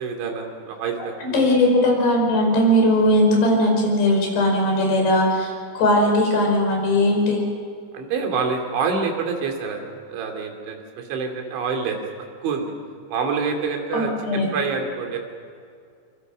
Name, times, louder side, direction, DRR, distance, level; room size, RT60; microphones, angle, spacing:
voice 1, 0.0-1.5 7.9-12.0 12.4-12.7 13.1-15.2, right 5 dB, 90° right, 3 dB, 5.3 m, -27 dB
voice 2, 1.2-7.4 13.9-14.5, left 1 dB, 65° left, 1 dB, 7.2 m, -19 dB
26.0 x 24.5 x 6.4 m, 2.3 s
omnidirectional pair, 5.1 m